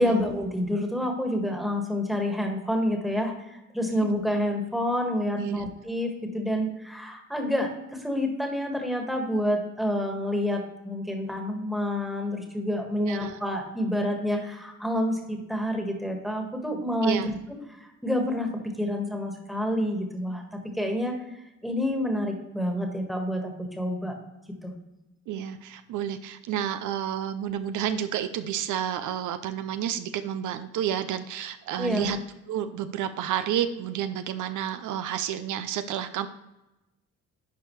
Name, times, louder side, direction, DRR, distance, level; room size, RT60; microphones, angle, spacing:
voice 1, 0.0-17.3 17.7-18.5 18.8-21.1 21.6-24.2 24.6-24.7 31.8-32.1, left 1 dB, ahead, 3 dB, 1.6 m, -28 dB
voice 2, 13.1-13.4 17.0-17.3 25.3-32.2 32.5-36.3, right 10 dB, 80° right, 10 dB, 0.6 m, -30 dB
11.0 x 4.6 x 3.2 m, 0.97 s
cardioid pair, 90°, 30 cm